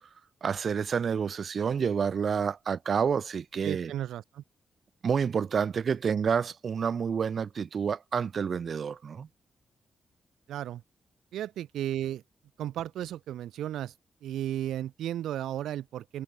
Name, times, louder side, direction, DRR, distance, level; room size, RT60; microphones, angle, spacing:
voice 1, 0.4-3.9 5.0-9.3, right 6 dB, 60° right, 1.6 m, -29 dB
voice 2, 3.6-4.4 10.5-10.8 11.3-12.2 12.6-13.9 14.2-16.2, right 12 dB, 80° right, 7.9 m, -34 dB
hypercardioid pair, 40°, 0 cm